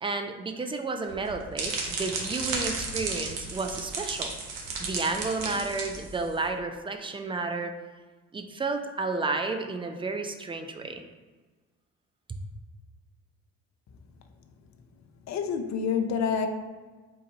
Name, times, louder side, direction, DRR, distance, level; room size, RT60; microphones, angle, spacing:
voice 1, 0.0-4.3 4.8-7.7 8.3-11.0 12.3-12.4, right 3 dB, 15° right, 5 dB, 0.5 m, -31 dB
sound 1, 1.1-6.5, right 3 dB, 65° right, 1.0 m, -34 dB
voice 2, 15.3-16.5, left 6 dB, 45° left, 6 dB, 0.6 m, -27 dB
3.9 x 2.6 x 4.3 m, 1.4 s
hypercardioid pair, 55°, 37 cm